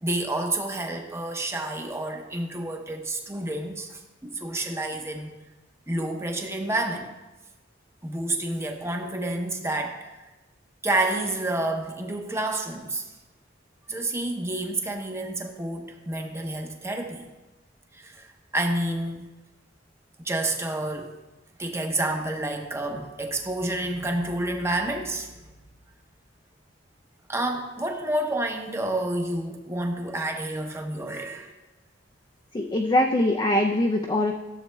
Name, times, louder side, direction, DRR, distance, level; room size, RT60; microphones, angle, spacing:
voice 1, 0.0-5.3 5.9-7.1 8.0-10.2 10.8-13.1 13.9-17.2 17.9-19.3 20.2-21.1 21.6-25.3 27.3-31.5, right 1 dB, 15° right, 3 dB, 0.7 m, -29 dB
voice 2, 32.5-34.3, left 1 dB, 25° left, 3 dB, 0.4 m, -22 dB
13.5 x 7.1 x 2.2 m, 1.1 s
head